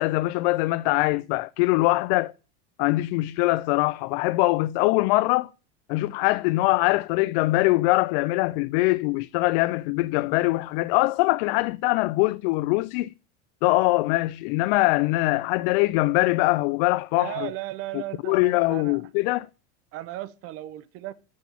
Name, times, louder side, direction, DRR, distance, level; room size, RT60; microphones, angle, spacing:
voice 1, 0.0-2.3 2.8-5.5 5.9-13.1 13.6-17.5 17.9-19.5, left 21 dB, 65° left, 0.4 m, -23 dB
voice 2, 17.2-19.0 19.9-21.1, right 15 dB, 45° right, 0.8 m, -35 dB
7.0 x 6.3 x 7.4 m
supercardioid pair, 140°, 31 cm